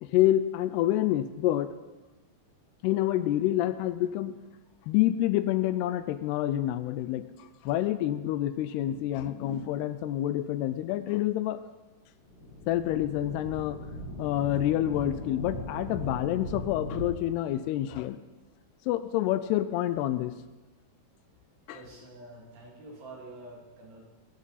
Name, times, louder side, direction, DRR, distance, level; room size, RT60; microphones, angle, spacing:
voice 1, 0.0-1.7 2.8-4.4 4.9-11.6 12.7-13.8 14.2-18.2 18.9-20.3 21.7-21.8, left 13 dB, 85° left, 12 dB, 2.6 m, -28 dB
sound 1, 12.3-17.1, left 1 dB, 60° left, 3.7 m, -39 dB
voice 2, 21.7-24.0, right 2 dB, 75° right, -2 dB, 4.7 m, -47 dB
19.0 x 11.0 x 4.1 m, 1.1 s
omnidirectional pair, 4.8 m